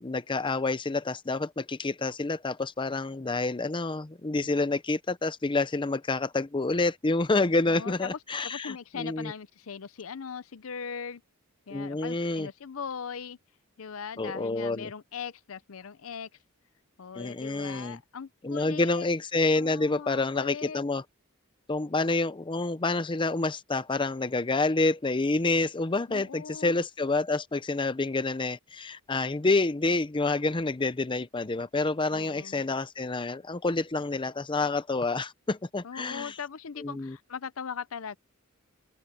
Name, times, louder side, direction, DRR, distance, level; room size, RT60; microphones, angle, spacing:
voice 1, 0.0-9.3 11.7-12.5 14.2-14.9 17.1-18.0 18.4-21.0 21.7-36.3 36.8-37.2, left 3 dB, 25° left, 0.6 m, -28 dB
voice 2, 7.7-8.1 8.4-11.2 11.7-13.4 13.8-16.3 17.0-19.1 19.6-20.8 26.1-26.8 32.1-32.6 35.8-38.2, left 6 dB, 75° left, 0.6 m, -39 dB
open air
head